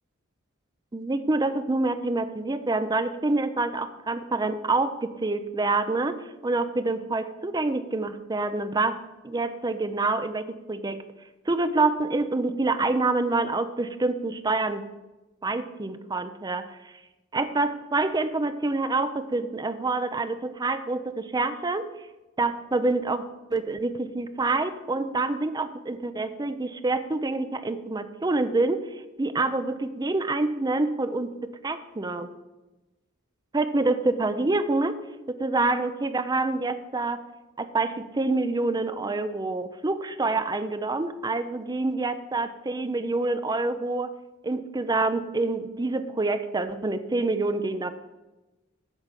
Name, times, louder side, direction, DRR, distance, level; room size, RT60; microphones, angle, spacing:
voice 1, 0.9-6.1 6.4-9.0 9.2-11.0 11.5-14.8 15.4-16.7 17.3-21.9 22.4-32.3 33.5-35.0 35.3-37.2 37.6-44.1 44.4-47.9, right 3 dB, 20° right, 11 dB, 0.5 m, -27 dB
8.9 x 6.0 x 8.2 m, 1.1 s
head